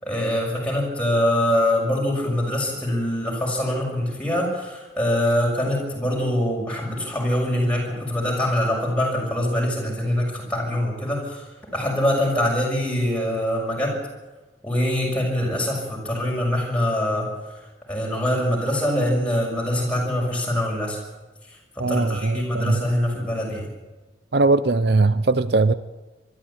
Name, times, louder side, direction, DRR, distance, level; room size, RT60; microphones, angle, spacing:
voice 1, 0.0-13.9 14.6-17.3 17.9-21.0 21.8-23.7, left 1 dB, 5° left, -2 dB, 6.4 m, -24 dB
voice 2, 21.8-22.8 24.3-25.7, right 3 dB, 65° right, 15 dB, 0.7 m, -20 dB
22.5 x 13.5 x 8.8 m, 1.2 s
head